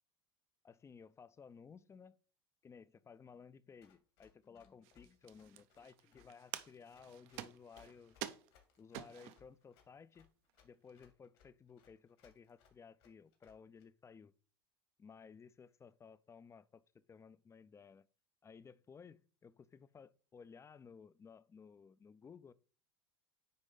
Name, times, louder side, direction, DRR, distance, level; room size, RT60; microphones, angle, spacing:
voice 1, 0.6-2.2 2.6-8.2 8.8-10.3 10.6-14.3 15.0-16.8 17.1-18.1 18.4-22.5, left 6 dB, 20° left, 0.5 m, -57 dB
Run, 3.8-13.8, left 8 dB, 70° left, 2.2 m, -68 dB
sound 1, 4.8-9.5 10.1-10.2 10.5-11.0, right 13 dB, 60° right, 0.7 m, -49 dB
9.4 x 3.2 x 3.7 m
hypercardioid pair, 85°, 13 cm